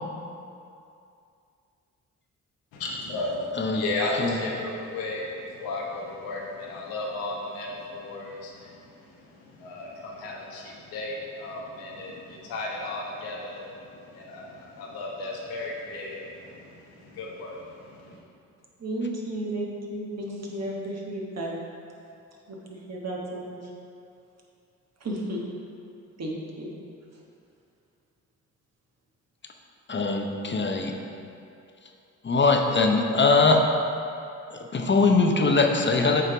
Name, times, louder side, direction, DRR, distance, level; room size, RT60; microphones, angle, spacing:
voice 1, 2.7-18.2, left 2 dB, 85° left, -3 dB, 1.0 m, -35 dB
voice 2, 18.8-21.5 22.5-23.6 25.0-25.5 26.2-26.7, right 1 dB, 45° right, -2 dB, 1.4 m, -33 dB
voice 3, 29.9-30.9 32.2-33.6 34.5-36.2, left 3 dB, 30° left, 3 dB, 0.7 m, -21 dB
8.3 x 3.3 x 3.9 m, 2.5 s
supercardioid pair, 45°, 36 cm